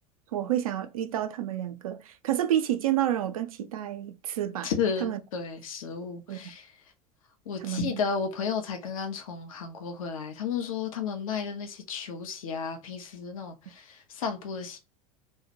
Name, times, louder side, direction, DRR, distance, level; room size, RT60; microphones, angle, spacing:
voice 1, 0.3-4.7 5.0-5.2 6.3-6.5 7.6-8.0, right 11 dB, 70° right, 0.4 m, -29 dB
voice 2, 4.6-6.7 7.5-14.8, left 6 dB, 65° left, 0.6 m, -33 dB
2.2 x 2.1 x 2.6 m
figure-of-eight pair, 80°, 19 cm